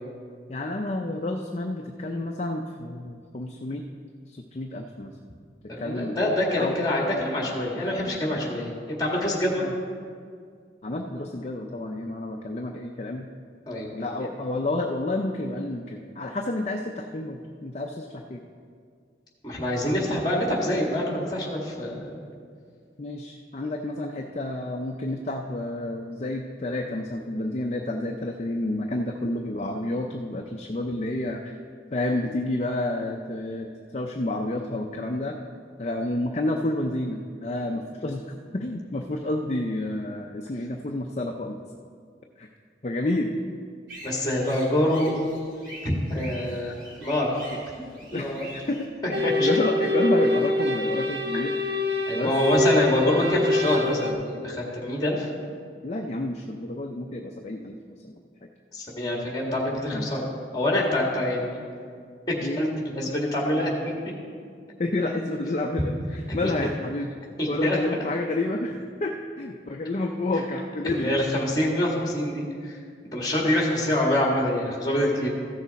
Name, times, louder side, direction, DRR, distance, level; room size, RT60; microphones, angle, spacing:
voice 1, 0.5-3.8 4.3-5.1 5.8-6.3 6.6-6.8 7.8-8.0 9.6-9.7 10.8-13.3 13.9-18.4 23.0-31.6 31.9-35.4 35.8-38.2 38.5-41.6 42.4-42.5 42.8-43.4 47.5-47.6 48.1-51.6 52.1-52.3 55.8-57.8 58.0-58.1 58.4-58.5 59.9-60.1 62.4-62.6 63.1-63.2 64.8-66.0 66.3-67.1 67.5-71.1 73.4-73.5 75.2-75.3, left 2 dB, 35° left, 2 dB, 0.5 m, -30 dB
voice 2, 5.7-9.7 13.7-13.9 19.4-22.2 44.0-45.1 45.8-47.3 48.1-48.5 49.2-49.5 51.3-51.4 52.1-55.3 58.7-60.2 60.5-61.6 62.3-63.9 66.3-66.5 67.4-67.8 70.8-72.8 73.1-75.3, left 1 dB, 20° left, -2 dB, 1.8 m, -25 dB
sound 1, 43.9-48.9, equal, 85° right, 2.6 m, -44 dB
sound 2, 49.1-54.1, left 2 dB, 60° right, 0.8 m, -25 dB
14.5 x 6.6 x 4.1 m, 2.1 s
head